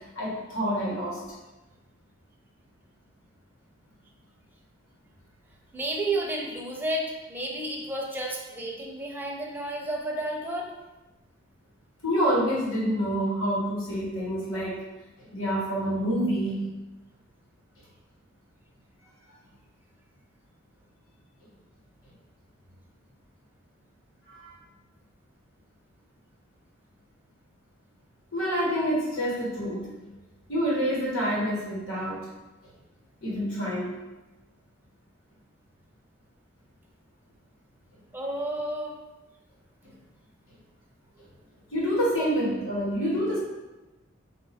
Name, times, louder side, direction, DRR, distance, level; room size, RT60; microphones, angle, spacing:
voice 1, 0.1-1.2 12.0-14.8 15.2-16.7 24.3-24.5 28.3-30.1 30.5-32.3 33.2-33.9 39.8-39.9 41.7-43.4, equal, 85° left, -5 dB, 1.4 m, -27 dB
voice 2, 5.7-10.7 38.1-38.9 42.2-42.3, right 1 dB, 10° right, -1 dB, 0.6 m, -31 dB
4.5 x 2.6 x 4.1 m, 1.1 s
head